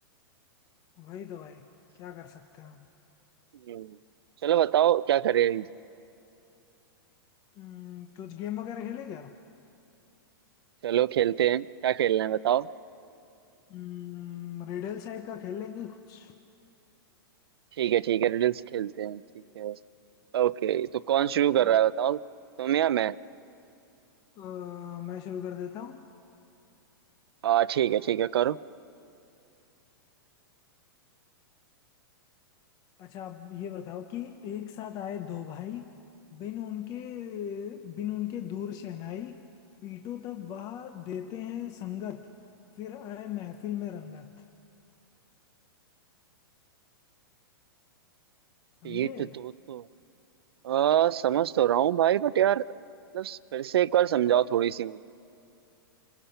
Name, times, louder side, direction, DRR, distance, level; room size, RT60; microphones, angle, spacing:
voice 1, 1.0-1.7 2.0-2.9 7.6-9.3 13.7-16.3 21.4-21.8 24.4-26.0 33.0-36.0 36.3-39.4 39.8-42.3 42.8-44.4 48.8-49.4 54.3-54.5, left 10 dB, 30° left, 7 dB, 0.8 m, -38 dB
voice 2, 4.4-5.7 10.8-12.7 17.8-19.2 19.6-19.8 20.3-22.2 22.6-23.2 27.4-28.6 48.8-49.8 50.6-52.6 53.1-55.0, right 11 dB, 80° right, 18 dB, 0.5 m, -25 dB
28.0 x 21.0 x 5.7 m, 2.7 s
hypercardioid pair, 150°, 13 cm